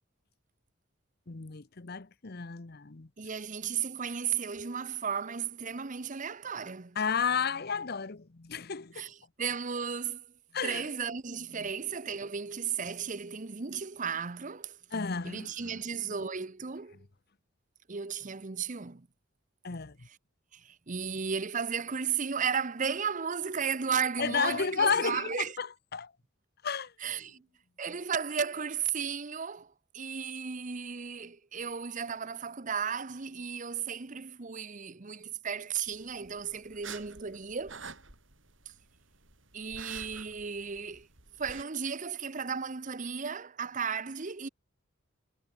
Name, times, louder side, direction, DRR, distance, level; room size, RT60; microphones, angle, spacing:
voice 1, 1.3-3.1 7.0-9.1 10.5-10.9 11.5-11.7 14.9-15.8 19.6-20.1 24.2-26.1 26.6-26.9, left 6 dB, 50° left, 0.9 m, -32 dB
voice 2, 3.2-7.0 8.9-10.2 10.6-14.8 15.2-17.0 17.9-19.1 20.5-25.5 27.0-27.4 27.8-37.8 39.5-41.1 41.4-44.5, right 6 dB, 40° right, 0.8 m, -34 dB
sound 1, 35.8-41.6, right 6 dB, 65° right, 5.9 m, -49 dB
head